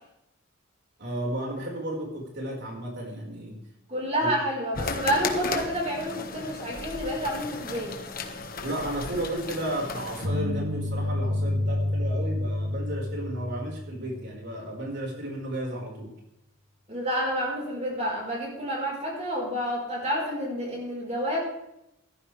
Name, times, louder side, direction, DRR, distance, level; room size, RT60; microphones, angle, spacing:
voice 1, 1.0-3.6 4.2-4.3 8.6-16.1, right 1 dB, 50° right, -1 dB, 4.9 m, -33 dB
voice 2, 3.9-8.0 16.9-21.4, equal, 30° right, -3 dB, 4.5 m, -29 dB
sound 1, 4.7-10.3, left 3 dB, 40° left, 1.5 m, -35 dB
sound 2, 10.2-14.4, left 1 dB, 70° right, 3.1 m, -29 dB
15.0 x 13.5 x 3.4 m, 0.83 s
head